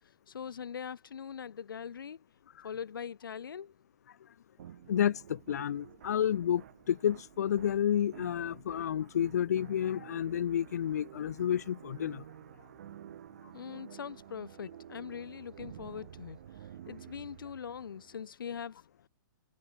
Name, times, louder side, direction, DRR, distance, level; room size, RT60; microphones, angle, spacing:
voice 1, 0.3-2.2 2.6-3.7 13.5-16.4 16.9-18.8, left 7 dB, 75° left, 1.4 m, -42 dB
sound 1, 4.6-18.2, right 11 dB, 45° right, 4.0 m, -51 dB
voice 2, 4.9-12.2, left 9 dB, 50° left, 0.5 m, -30 dB
hypercardioid pair, 170°, 11 cm